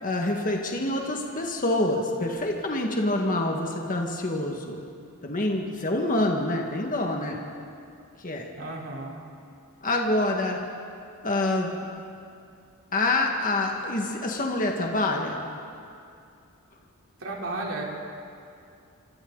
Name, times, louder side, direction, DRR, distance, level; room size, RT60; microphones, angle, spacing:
voice 1, 0.0-4.8 5.2-7.4 8.2-8.4 9.8-10.6 11.2-11.7 12.9-15.5, left 2 dB, 40° left, 1 dB, 1.9 m, -26 dB
voice 2, 8.6-9.2 17.2-17.8, right 2 dB, 65° right, -2 dB, 3.8 m, -33 dB
26.5 x 26.0 x 4.1 m, 2.5 s
head